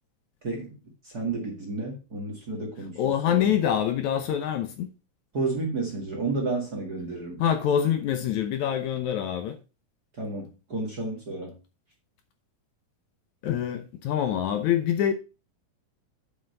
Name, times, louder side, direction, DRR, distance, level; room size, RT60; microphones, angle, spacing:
voice 1, 0.4-0.7 1.0-3.0 3.3-3.5 5.3-7.4 10.2-11.5, right 3 dB, 35° right, 1.9 m, -31 dB
voice 2, 3.0-4.9 7.4-9.6 13.4-15.1, left 9 dB, 70° left, 2.1 m, -25 dB
7.7 x 5.6 x 5.4 m
omnidirectional pair, 3.8 m